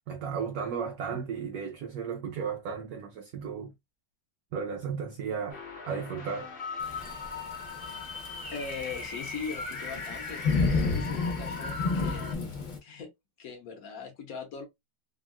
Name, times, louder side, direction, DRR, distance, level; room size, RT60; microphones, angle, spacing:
voice 1, 0.0-3.7 4.5-5.6 5.9-6.5, right 6 dB, 65° right, 1.0 m, -34 dB
sound 1, 5.5-12.3, left 4 dB, 40° left, 0.9 m, -39 dB
Thunderstorm / Rain, 6.8-12.8, left 3 dB, 90° left, 0.4 m, -31 dB
voice 2, 8.5-12.3 12.8-13.1 13.4-14.7, left 5 dB, 55° left, 1.2 m, -40 dB
3.6 x 2.3 x 2.3 m
omnidirectional pair, 2.0 m